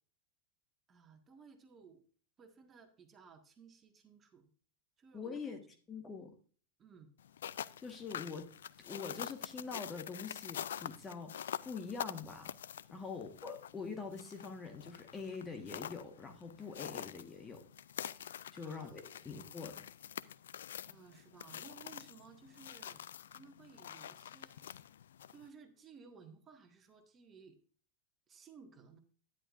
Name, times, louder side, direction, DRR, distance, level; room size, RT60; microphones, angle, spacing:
voice 1, 0.9-2.0 2.4-4.5 5.0-5.6 6.8-7.1 13.0-13.3 18.6-19.3 20.9-23.0 23.3-24.6 25.3-27.6 28.3-29.0, right 5 dB, 25° right, 5 dB, 1.7 m, -58 dB
voice 2, 5.1-5.6 5.9-6.3 7.8-8.5 8.8-12.5 12.9-17.6 18.5-19.7, left 5 dB, 20° left, 5 dB, 1.5 m, -44 dB
sound 1, 7.2-25.5, left 9 dB, 65° left, 0.4 m, -46 dB
11.0 x 10.0 x 2.6 m, 0.42 s
figure-of-eight pair, 90°, 0 cm